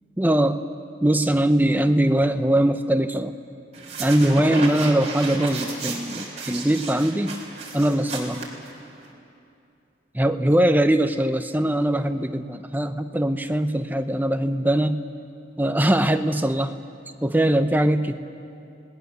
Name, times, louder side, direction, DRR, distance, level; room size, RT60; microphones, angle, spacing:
voice 1, 0.2-0.6 1.0-3.4 4.0-7.4 7.7-8.4 10.1-15.1 15.6-16.7 17.2-18.1, right 1 dB, 10° right, 8 dB, 0.7 m, -21 dB
sound 1, 3.7-9.1, right 3 dB, 35° right, 3.4 m, -33 dB
30.0 x 19.0 x 6.9 m, 2.6 s
head